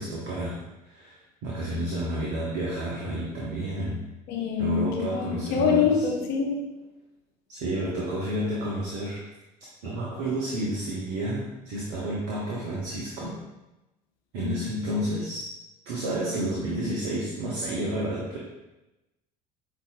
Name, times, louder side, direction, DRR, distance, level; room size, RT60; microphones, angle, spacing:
voice 1, 0.0-4.1 4.6-6.1 7.5-9.2 9.8-13.4 14.3-15.4 15.9-18.4, right 1 dB, 65° right, 0.7 m, -30 dB
voice 2, 4.3-6.7 14.4-14.7, left 6 dB, 55° left, 0.7 m, -25 dB
5.2 x 2.5 x 2.3 m
figure-of-eight pair, 60°, 19 cm